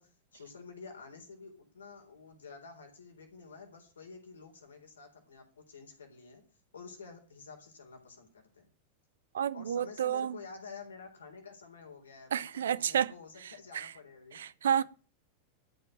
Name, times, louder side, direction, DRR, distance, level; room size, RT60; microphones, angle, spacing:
voice 1, 0.0-6.4 6.7-8.7 9.5-14.4, left 5 dB, 70° left, 3.9 m, -50 dB
voice 2, 9.3-10.4 12.3-13.1 13.4-13.9 14.3-14.8, right 9 dB, 65° right, 0.6 m, -31 dB
13.0 x 5.8 x 9.0 m
figure-of-eight pair, 90°, 0 cm